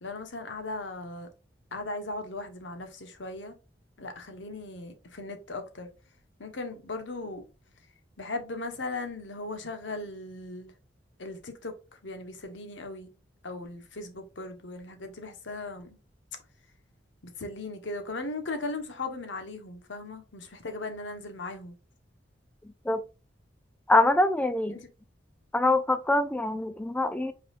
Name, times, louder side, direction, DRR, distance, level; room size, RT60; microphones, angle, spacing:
voice 1, 0.0-1.3 1.7-3.6 4.0-5.9 6.4-7.4 8.2-10.7 11.2-13.1 13.4-16.0 17.2-21.7 24.7-24.9, left 2 dB, 80° left, 1.1 m, -38 dB
voice 2, 23.9-24.8 25.5-27.3, left 2 dB, 10° left, 0.3 m, -24 dB
5.4 x 4.1 x 2.4 m
head